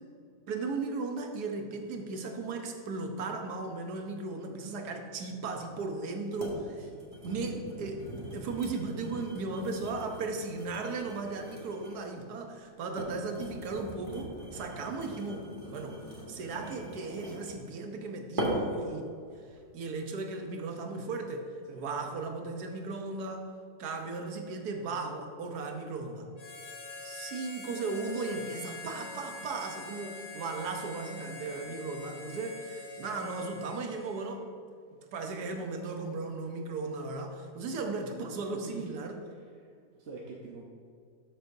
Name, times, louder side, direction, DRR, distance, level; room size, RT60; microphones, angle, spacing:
voice 1, 0.5-6.9 7.2-16.0 16.3-19.0 19.5-23.5 23.8-26.3 27.0-34.5 35.1-39.2, right 3 dB, 85° right, 4 dB, 1.4 m, -36 dB
sound 1, 5.6-5.7 6.4-6.6 7.0-12.1 12.7-17.7 18.4-18.8 19.4-19.6, right 1 dB, 35° right, 1.8 m, -40 dB
Harmonica, 26.3-34.4, left 3 dB, 70° left, 2.7 m, -45 dB
voice 2, 39.3-39.7 39.9-40.6, right 3 dB, 50° right, -2 dB, 1.0 m, -45 dB
12.5 x 6.8 x 2.7 m, 2.2 s
omnidirectional pair, 1.7 m